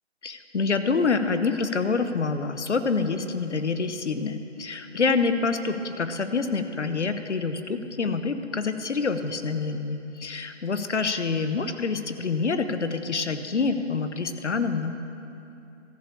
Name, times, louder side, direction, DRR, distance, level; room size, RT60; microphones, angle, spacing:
voice 1, 0.2-14.9, left 4 dB, 75° left, 9 dB, 0.8 m, -27 dB
14.0 x 5.1 x 6.8 m, 2.8 s
figure-of-eight pair, 175°, 35 cm